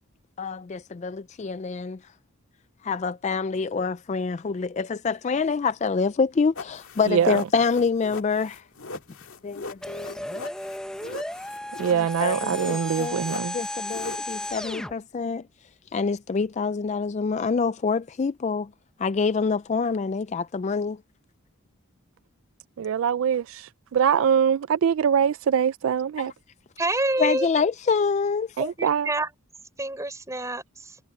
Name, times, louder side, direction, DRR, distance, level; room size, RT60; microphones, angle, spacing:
voice 1, 0.4-2.0 2.8-8.6 9.4-10.3 11.9-13.2 13.5-15.4 15.9-18.7 19.0-21.0 27.2-28.6, left 5 dB, 30° left, 0.3 m, -26 dB
sound 1, 6.6-14.8, left 3 dB, 75° left, 1.8 m, -40 dB
voice 2, 7.1-7.4 11.8-13.5 22.8-26.3 28.6-29.1, right 7 dB, 65° right, 0.3 m, -23 dB
sound 2, 9.8-14.9, left 1 dB, 5° left, 0.8 m, -34 dB
voice 3, 26.8-27.5 28.6-29.3 29.8-31.0, right 2 dB, 15° right, 4.1 m, -27 dB
head